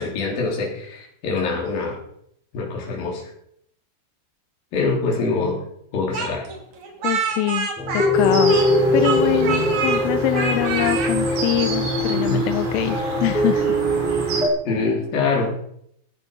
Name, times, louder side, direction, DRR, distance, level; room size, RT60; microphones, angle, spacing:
voice 1, 0.0-2.0 2.5-3.2 4.7-5.6 5.9-6.5 12.1-12.5 14.7-15.6, left 4 dB, 50° left, -1 dB, 5.1 m, -24 dB
Speech, 6.1-8.8 9.0-10.0 10.3-11.1, right 5 dB, 45° right, 2.8 m, -26 dB
voice 2, 7.0-7.7 7.9-13.7, left 15 dB, 85° left, 10 dB, 3.2 m, -24 dB
sound 1, 7.8-14.5, equal, ahead, 2.0 m, -22 dB
sound 2, 8.1-14.5, right 3 dB, 80° right, 6.4 m, -30 dB
18.0 x 10.0 x 5.4 m, 0.71 s
omnidirectional pair, 5.8 m